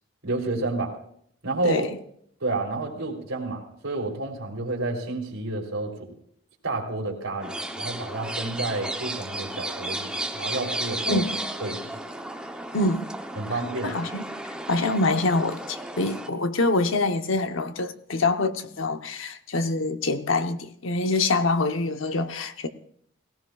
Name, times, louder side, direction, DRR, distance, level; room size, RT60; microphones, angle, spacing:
voice 1, 0.2-0.9 1.4-1.9 2.4-6.1 6.6-11.2 11.6-11.9 13.4-13.9, right 2 dB, 90° right, 3.2 m, -30 dB
sound 1, 7.4-16.3, right 1 dB, 5° right, 0.7 m, -34 dB
voice 2, 12.7-13.0 13.5-14.3 14.7-22.7, left 2 dB, 75° left, 0.9 m, -25 dB
18.0 x 17.5 x 2.3 m
head